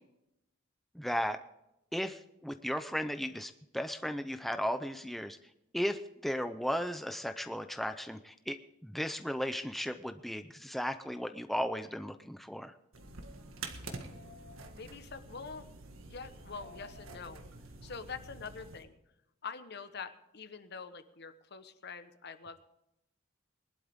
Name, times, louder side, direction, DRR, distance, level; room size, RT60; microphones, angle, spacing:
voice 1, 0.9-1.4 1.9-5.4 5.7-12.7, equal, ahead, 9 dB, 0.5 m, -35 dB
sound 1, 12.9-18.8, right 3 dB, 85° right, 1.7 m, -47 dB
voice 2, 14.7-15.7 16.1-17.4 17.8-18.9 19.4-22.6, left 5 dB, 55° left, 10 dB, 1.1 m, -45 dB
21.0 x 11.5 x 3.6 m, 0.86 s
head